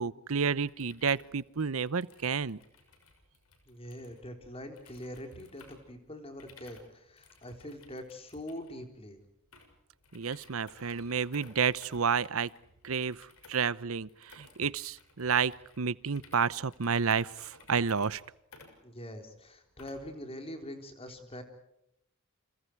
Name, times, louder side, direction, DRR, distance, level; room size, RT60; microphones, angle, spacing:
voice 1, 0.0-2.6 10.1-12.5 12.8-18.2, right 6 dB, 75° right, 19 dB, 0.8 m, -30 dB
sound 1, 0.7-20.2, left 3 dB, 85° left, 6.4 m, -59 dB
voice 2, 3.7-9.2 18.8-21.4, equal, 25° left, 5 dB, 4.1 m, -44 dB
30.0 x 27.5 x 4.7 m, 0.83 s
head